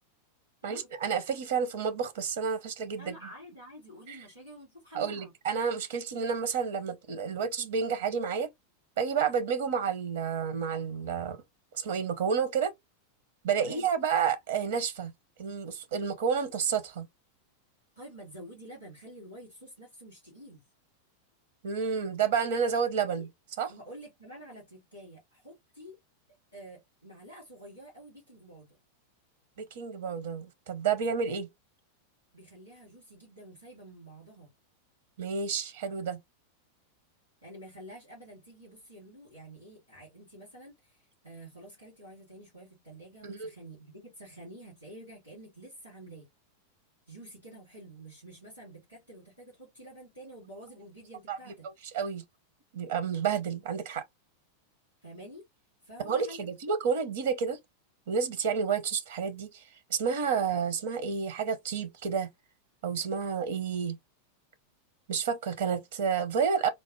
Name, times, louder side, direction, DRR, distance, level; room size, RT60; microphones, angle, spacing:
voice 1, 0.6-3.1 4.1-4.2 4.9-8.5 9.0-11.4 11.7-12.7 13.4-15.1 15.4-17.1 21.6-23.3 23.6-23.7 29.6-31.5 35.2-36.2 43.2-43.5 51.3-51.4 51.9-52.2 52.7-54.0 56.1-57.6 58.1-59.6 59.9-62.3 62.8-64.0 65.1-66.7, right 6 dB, 55° right, 0.7 m, -30 dB
voice 2, 3.0-5.3 13.6-13.9 18.0-20.6 23.2-23.3 23.7-25.9 26.5-28.8 32.3-34.5 37.4-46.3 47.1-51.7 55.0-55.4 55.8-56.5, right 1 dB, 90° right, 2.6 m, -49 dB
4.0 x 2.1 x 3.0 m
figure-of-eight pair, 90°, 0 cm